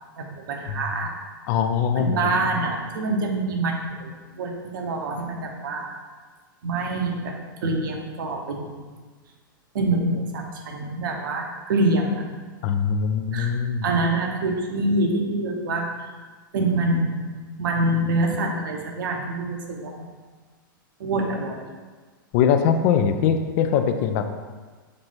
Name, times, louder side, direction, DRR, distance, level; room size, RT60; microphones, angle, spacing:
voice 1, 0.2-1.1 1.9-5.9 6.6-8.7 9.7-12.2 13.3-13.5 13.8-15.9 16.5-17.2 17.6-20.1 21.0-21.6, right 2 dB, 70° right, 2 dB, 0.7 m, -25 dB
voice 2, 1.5-2.2 2.5-2.6 12.6-13.9 22.3-24.3, left 7 dB, 50° left, 7 dB, 0.4 m, -22 dB
3.2 x 3.2 x 4.0 m, 1.4 s
hypercardioid pair, 105°, 11 cm